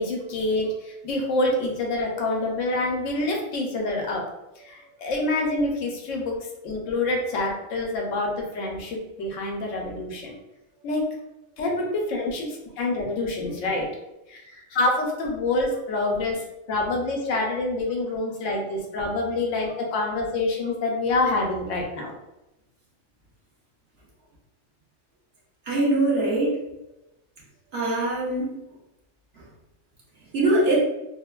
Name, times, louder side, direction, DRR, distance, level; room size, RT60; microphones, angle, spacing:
voice 1, 0.0-4.2 4.7-6.4 6.6-10.3 10.8-11.0 11.6-13.9 14.3-16.4 16.7-22.1, left 2 dB, 75° left, 0 dB, 0.9 m, -26 dB
voice 2, 25.7-26.6 27.7-28.6 30.3-30.8, right 2 dB, 55° right, -5 dB, 0.9 m, -22 dB
3.0 x 2.1 x 2.3 m, 0.95 s
omnidirectional pair, 1.3 m